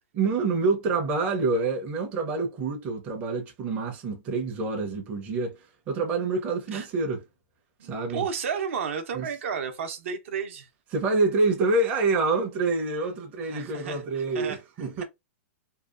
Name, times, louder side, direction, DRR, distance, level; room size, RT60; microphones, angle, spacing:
voice 1, 0.2-5.6 5.9-7.2 7.8-8.2 9.1-9.3 10.9-15.0, right 3 dB, 20° right, 0.6 m, -27 dB
voice 2, 7.8-10.7 13.4-14.6, right 6 dB, 60° right, 0.7 m, -33 dB
2.7 x 2.3 x 2.3 m
hypercardioid pair, 165°, 8 cm